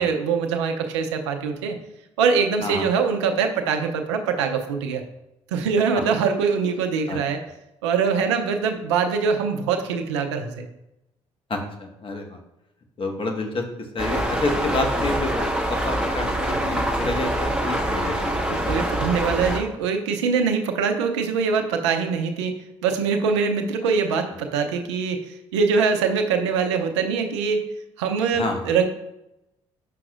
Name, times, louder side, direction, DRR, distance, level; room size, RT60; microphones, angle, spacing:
voice 1, 0.0-1.8 2.2-5.0 5.5-7.4 7.8-10.6 18.5-27.6 28.0-28.8, right 5 dB, 80° right, 6 dB, 0.6 m, -23 dB
voice 2, 11.5-12.4 13.0-19.2 28.3-28.7, left 2 dB, 35° left, 2 dB, 1.3 m, -29 dB
sound 1, 14.0-19.6, right 1 dB, 5° right, 1.7 m, -25 dB
7.5 x 6.0 x 2.5 m, 0.90 s
hypercardioid pair, 50°, 15 cm